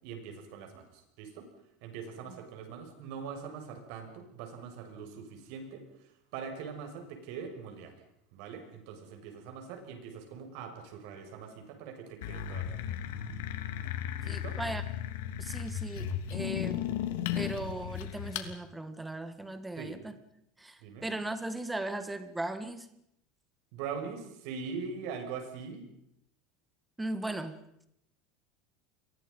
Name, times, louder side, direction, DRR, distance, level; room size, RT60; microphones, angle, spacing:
voice 1, 0.0-1.5 1.8-7.9 8.3-13.0 14.2-14.6 19.8-20.0 20.8-21.1 23.7-25.8, right 6 dB, 60° right, 5 dB, 6.3 m, -42 dB
sound 1, 12.2-18.5, left 10 dB, 85° left, 2.9 m, -35 dB
voice 2, 14.2-14.8 15.4-16.8 17.3-20.1 20.6-22.9 27.0-27.6, right 1 dB, 5° right, 11 dB, 1.8 m, -37 dB
29.5 x 23.0 x 5.4 m, 0.76 s
cardioid pair, 160°, 0 cm